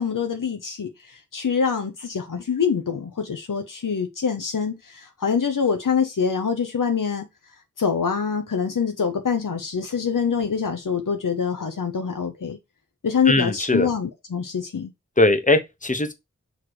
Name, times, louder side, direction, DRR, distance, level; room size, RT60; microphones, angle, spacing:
voice 1, 0.0-7.3 7.8-12.6 13.0-14.9, left 6 dB, 85° left, 0.8 m, -25 dB
voice 2, 13.3-13.9 15.2-16.1, left 2 dB, 25° left, 1.0 m, -20 dB
6.5 x 3.1 x 4.7 m
wide cardioid pair, 40°, 31 cm